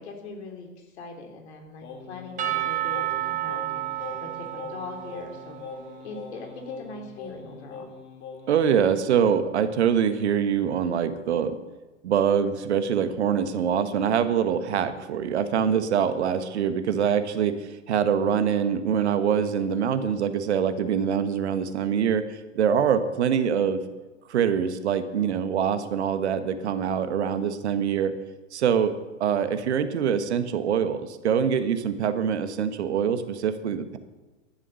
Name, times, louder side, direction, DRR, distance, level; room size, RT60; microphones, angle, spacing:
voice 1, 0.0-5.6 6.0-7.9, left 3 dB, 55° left, 3 dB, 3.2 m, -41 dB
Singing, 1.8-8.6, left 5 dB, 30° left, 2.0 m, -42 dB
Percussion / Church bell, 2.4-6.2, right 15 dB, 20° right, 1.0 m, -31 dB
voice 2, 8.5-11.6 12.0-23.8 24.3-28.1 28.5-28.9 29.2-34.0, right 8 dB, 60° right, 10 dB, 1.3 m, -24 dB
11.0 x 11.0 x 6.8 m, 1.2 s
figure-of-eight pair, 105°, 38 cm